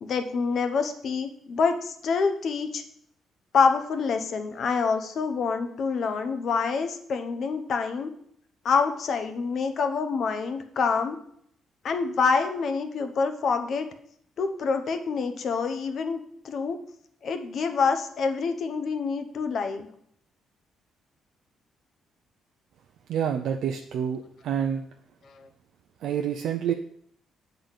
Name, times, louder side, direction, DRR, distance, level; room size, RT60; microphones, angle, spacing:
voice 1, 0.0-2.8 3.5-8.1 8.6-11.2 11.8-13.9 14.4-16.2 16.4-16.8 17.2-19.9, left 5 dB, 60° left, 7 dB, 0.8 m, -26 dB
voice 2, 23.1-24.8 26.0-26.7, right 8 dB, 75° right, 4 dB, 0.5 m, -28 dB
8.0 x 3.9 x 6.4 m, 0.68 s
cardioid pair, 90°, 0 cm